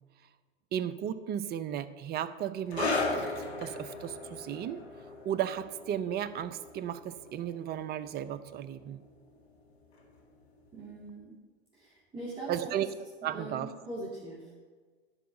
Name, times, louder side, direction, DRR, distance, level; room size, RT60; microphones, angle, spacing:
voice 1, 0.7-3.3 3.6-4.8 5.2-9.0 12.5-12.9 13.2-13.7, right 10 dB, 30° right, 13 dB, 0.6 m, -34 dB
sound 1, 2.7-9.7 10.0-10.2 10.9-11.0, left 3 dB, 85° left, 1.8 m, -37 dB
voice 2, 10.7-11.4 11.7-12.9 13.2-14.5, right 2 dB, 15° right, -7 dB, 2.3 m, -42 dB
11.0 x 4.8 x 7.0 m, 1.5 s
hypercardioid pair, 95°, 31 cm